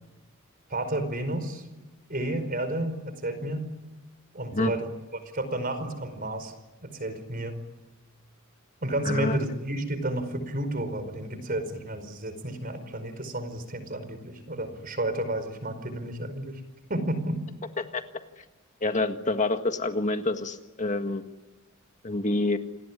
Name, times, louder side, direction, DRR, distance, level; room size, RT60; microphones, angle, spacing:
voice 1, 0.7-1.6 2.1-3.7 4.3-6.5 6.8-7.6 8.8-16.6 16.9-17.4, right 1 dB, 45° right, 11 dB, 5.0 m, -31 dB
voice 2, 9.0-9.4 17.8-18.0 18.8-21.2 22.0-22.6, left 2 dB, 35° left, 6 dB, 1.7 m, -27 dB
29.0 x 20.0 x 10.0 m, 1.2 s
head